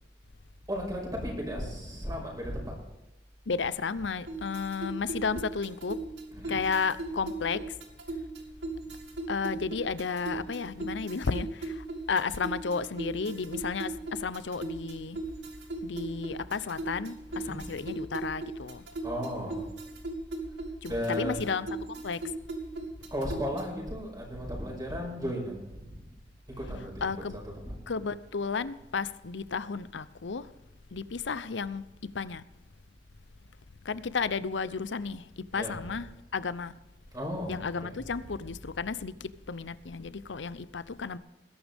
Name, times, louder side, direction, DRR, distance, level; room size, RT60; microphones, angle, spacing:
voice 1, 0.7-2.7 6.3-6.6 17.3-17.9 19.0-19.7 20.9-21.5 23.1-26.1 26.6-28.0 35.5-36.1 37.1-38.5, equal, 20° right, 5.4 m, -36 dB
voice 2, 3.5-6.0 6.5-7.6 9.3-15.2 15.8-18.8 20.8-22.2 27.0-27.4 27.9-30.5 30.9-32.4 33.8-36.0 36.3-36.7 37.5-41.2, left 5 dB, 85° left, 0.7 m, -33 dB
sound 1, 4.3-23.8, right 2 dB, 80° right, 2.5 m, -38 dB
20.5 x 11.5 x 3.6 m
head